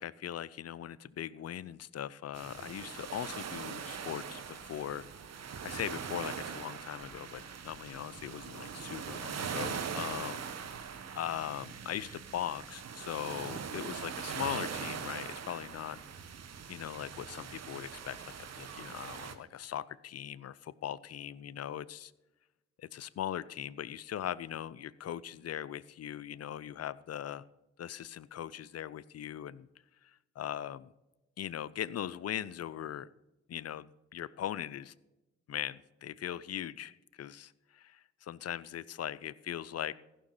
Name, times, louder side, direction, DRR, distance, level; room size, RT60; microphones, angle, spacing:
voice 1, 0.0-5.1 5.6-10.5 11.1-16.0 16.7-22.1 22.8-27.4 27.8-29.7 30.0-30.9 31.4-33.1 33.5-34.9 35.5-39.9, left 10 dB, 50° left, 19 dB, 0.6 m, -40 dB
sound 1, 2.3-19.3, right 6 dB, 50° right, 1.3 m, -41 dB
15.0 x 6.1 x 6.6 m, 1.0 s
hypercardioid pair, 50°, 32 cm